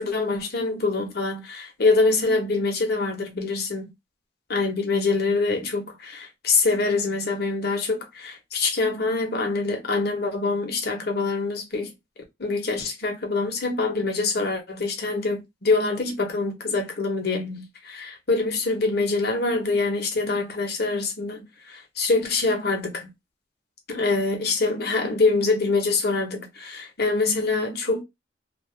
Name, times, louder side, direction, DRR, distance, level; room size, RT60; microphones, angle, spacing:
voice 1, 0.0-3.8 4.5-11.9 12.4-23.1 23.9-28.0, left 3 dB, 60° left, 1.1 m, -25 dB
2.6 x 2.6 x 3.1 m
head